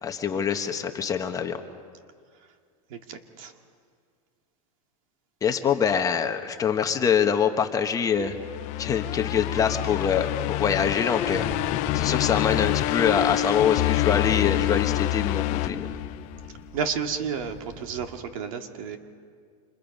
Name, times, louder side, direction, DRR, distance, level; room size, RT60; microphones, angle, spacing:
voice 1, 0.0-1.6 5.4-8.3 8.8-15.9, left 7 dB, 20° left, 5 dB, 1.2 m, -25 dB
voice 2, 2.9-3.5 16.7-19.0, right 7 dB, 65° right, 5 dB, 2.2 m, -32 dB
sound 1, 8.3-16.6, left 18 dB, 40° left, 0.5 m, -27 dB
sound 2, 11.3-18.2, equal, 10° right, 2.6 m, -42 dB
29.0 x 27.5 x 5.4 m, 2.1 s
supercardioid pair, 150°, 19 cm